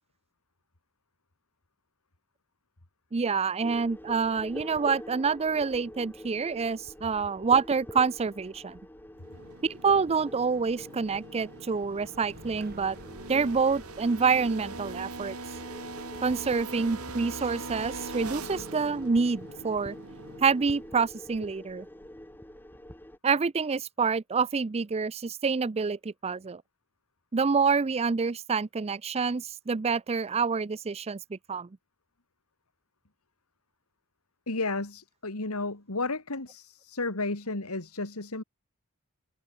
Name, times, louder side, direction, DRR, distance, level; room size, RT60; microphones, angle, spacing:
voice 1, 3.1-8.8 9.6-13.0 13.3-15.4 16.2-19.9 20.4-21.9 23.2-26.6 27.3-31.7, right 5 dB, 30° right, 0.4 m, -27 dB
sound 1, 3.6-23.2, left 1 dB, 10° left, 2.6 m, -46 dB
sound 2, 9.2-21.0, right 3 dB, 80° right, 7.0 m, -42 dB
sound 3, 12.2-18.7, right 1 dB, 45° right, 7.8 m, -51 dB
voice 2, 34.5-38.4, left 3 dB, 75° left, 2.6 m, -32 dB
head